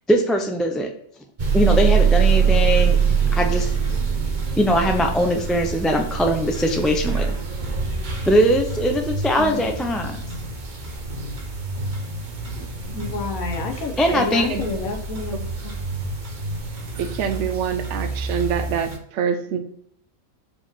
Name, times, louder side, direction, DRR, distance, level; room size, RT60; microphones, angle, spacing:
voice 1, 0.1-0.9 1.5-3.0 3.3-3.7 4.6-7.4 8.3-10.2 14.0-14.5, equal, ahead, 3 dB, 0.4 m, -20 dB
sound 1, 1.4-19.0, right 6 dB, 40° right, 1.0 m, -25 dB
voice 2, 9.5-10.5 12.9-15.8, left 4 dB, 85° left, 5 dB, 1.5 m, -31 dB
voice 3, 12.6-13.0 13.9-14.2 14.5-14.8 17.0-19.6, right 7 dB, 60° right, 7 dB, 1.0 m, -26 dB
4.9 x 4.9 x 5.7 m, 0.69 s
omnidirectional pair, 1.5 m